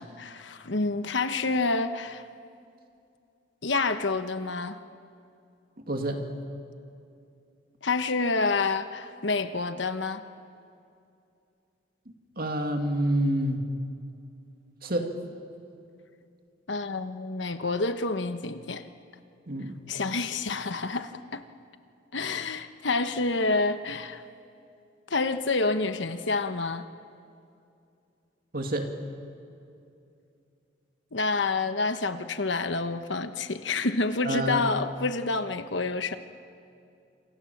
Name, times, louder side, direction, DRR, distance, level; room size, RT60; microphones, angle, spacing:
voice 1, 0.0-2.2 3.6-4.8 7.8-10.2 16.7-18.8 19.9-21.4 22.1-24.2 25.1-26.8 31.1-36.2, left 3 dB, 70° left, 9 dB, 1.1 m, -28 dB
voice 2, 5.9-6.3 12.4-13.6 14.8-15.2 19.5-19.8 28.5-29.0 34.2-34.6, right 1 dB, 50° right, 4 dB, 2.5 m, -28 dB
27.5 x 25.5 x 7.3 m, 2.6 s
head